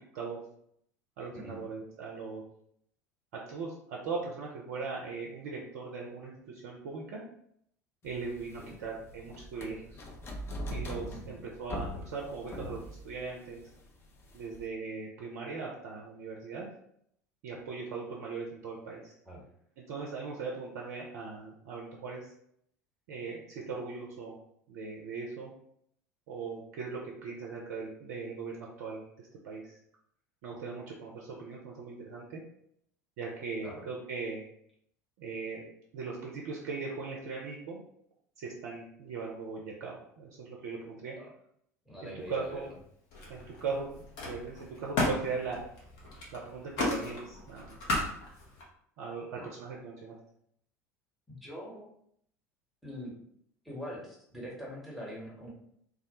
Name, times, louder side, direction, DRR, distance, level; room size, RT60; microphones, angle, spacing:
voice 1, 1.2-2.4 3.3-7.2 8.0-10.0 10.7-13.6 14.3-16.7 17.4-19.1 19.8-22.3 23.1-24.4 24.7-25.5 26.3-29.8 30.4-32.4 33.2-34.4 35.2-35.6 35.9-37.8 38.4-41.2 42.0-42.6 43.3-45.6 46.3-47.8 49.0-50.2, right 4 dB, 60° right, -2 dB, 0.4 m, -39 dB
sound 1, 8.1-14.7, equal, 25° left, 0.4 m, -42 dB
voice 2, 41.9-42.7 49.3-49.5 51.3-51.8 52.8-53.1 53.6-55.5, equal, ahead, -4 dB, 0.9 m, -43 dB
Camera, 42.2-42.8 43.1-48.6, left 2 dB, 55° left, 0.8 m, -36 dB
2.2 x 2.0 x 2.9 m, 0.70 s
figure-of-eight pair, 70°, 9 cm